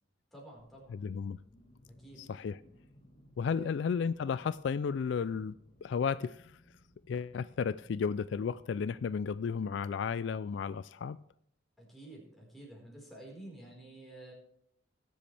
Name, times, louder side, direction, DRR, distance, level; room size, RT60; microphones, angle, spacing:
voice 1, 0.3-1.0 1.9-2.3 3.5-3.7 11.8-14.3, right 1 dB, ahead, 4.5 m, -50 dB
sound 1, 0.6-9.7, left 1 dB, 30° left, 1.4 m, -61 dB
voice 2, 0.9-1.4 2.3-2.6 3.4-5.5 5.8-6.5 7.1-11.2, left 6 dB, 65° left, 0.3 m, -33 dB
20.5 x 7.8 x 3.4 m
head